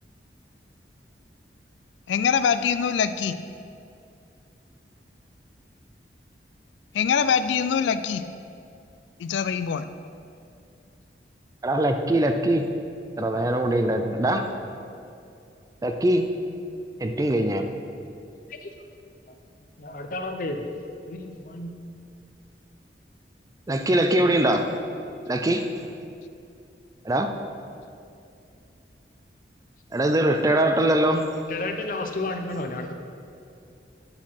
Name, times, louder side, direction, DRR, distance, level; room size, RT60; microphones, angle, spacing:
voice 1, 2.1-3.4 6.9-8.2 9.2-9.9, left 7 dB, 85° left, 12 dB, 0.3 m, -23 dB
voice 2, 11.6-12.6 13.2-14.4 15.8-16.2 17.0-17.7 23.7-24.7 25.3-25.7 27.0-27.3 29.9-31.2, right 1 dB, 20° right, 6 dB, 0.4 m, -22 dB
voice 3, 19.8-20.7 21.1-21.8 31.5-32.9, left 2 dB, 50° left, 5 dB, 0.6 m, -32 dB
8.7 x 4.3 x 5.7 m, 2.5 s
head